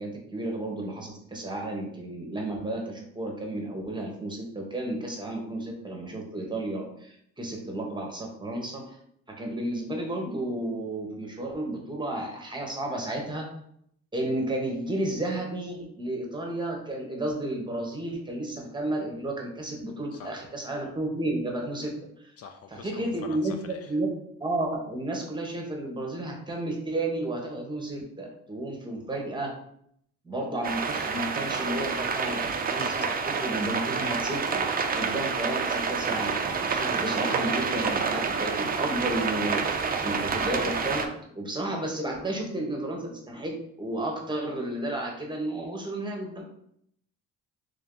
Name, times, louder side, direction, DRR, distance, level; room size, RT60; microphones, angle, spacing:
voice 1, 0.0-8.9 9.3-13.5 14.1-21.9 22.7-24.1 24.4-29.5 30.2-41.1 41.3-46.4, right 1 dB, 15° right, 1 dB, 1.0 m, -32 dB
voice 2, 22.4-23.9 32.8-33.1, left 6 dB, 55° left, 6 dB, 0.4 m, -43 dB
sound 1, 30.6-41.1, right 5 dB, 30° right, 0.4 m, -28 dB
3.5 x 2.7 x 3.7 m, 0.71 s
cardioid pair, 90°, 30 cm